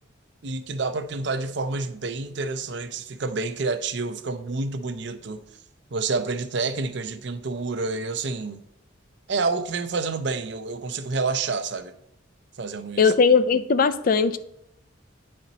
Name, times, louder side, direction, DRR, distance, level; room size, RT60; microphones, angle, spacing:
voice 1, 0.4-5.4 5.9-8.6 9.3-11.9 12.6-13.1, right 3 dB, 65° right, 0.6 m, -28 dB
voice 2, 13.0-14.4, left 5 dB, 50° left, 0.4 m, -19 dB
9.6 x 4.3 x 4.0 m
head